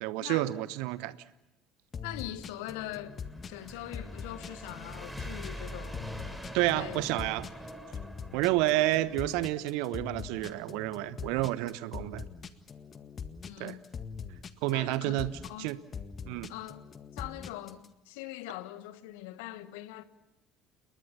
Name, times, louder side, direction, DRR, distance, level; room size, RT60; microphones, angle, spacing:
voice 1, 0.0-1.2 6.5-7.5 8.3-12.3 13.6-13.8 14.6-15.3 15.6-15.8 16.2-16.5, right 17 dB, 60° right, 1.0 m, -29 dB
sound 1, 1.9-17.9, left 6 dB, 35° left, 1.8 m, -42 dB
voice 2, 2.0-3.2 3.5-6.2 6.6-7.1 13.5-13.9 14.7-15.7 16.5-16.8 17.1-20.0, left 15 dB, 65° left, 1.3 m, -42 dB
sound 2, 2.7-9.4, equal, ahead, 4.5 m, -44 dB
29.5 x 21.5 x 7.1 m
figure-of-eight pair, 60°, 0 cm